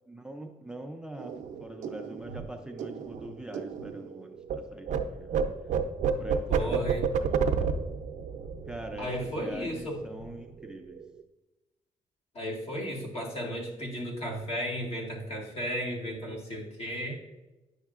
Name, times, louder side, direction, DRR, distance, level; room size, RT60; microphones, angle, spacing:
voice 1, 0.1-5.4 6.0-7.9 8.7-11.0, right 1 dB, 5° right, 5 dB, 0.4 m, -43 dB
sound 1, 1.2-4.6 4.9-9.8 10.1-10.4 10.6-11.2, right 6 dB, 75° right, 0.5 m, -31 dB
voice 2, 6.5-7.1 9.0-10.0 12.3-17.2, equal, 55° left, -1 dB, 1.8 m, -34 dB
9.5 x 6.4 x 2.4 m, 1.1 s
cardioid pair, 130°, 13 cm